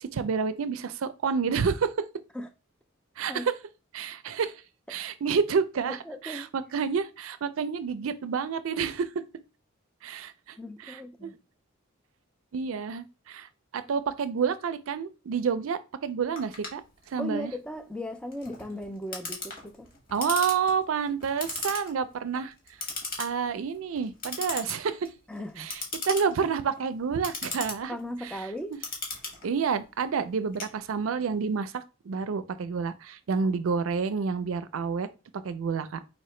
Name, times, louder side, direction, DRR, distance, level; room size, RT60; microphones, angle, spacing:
voice 1, 0.0-2.0 3.2-3.5 3.9-4.6 4.9-9.1 10.0-11.3 12.5-13.5 13.7-16.8 17.1-17.5 20.1-22.5 23.2-25.1 25.6-28.0 28.2-28.8 29.4-35.1 35.4-36.0, right 6 dB, 70° right, 0.4 m, -29 dB
voice 2, 5.9-6.5 10.6-11.4 17.2-19.9 25.3-25.7 27.9-28.8, equal, 5° left, 0.4 m, -37 dB
Clock, 16.4-31.3, left 3 dB, 40° left, 1.2 m, -39 dB
4.2 x 2.8 x 3.1 m
head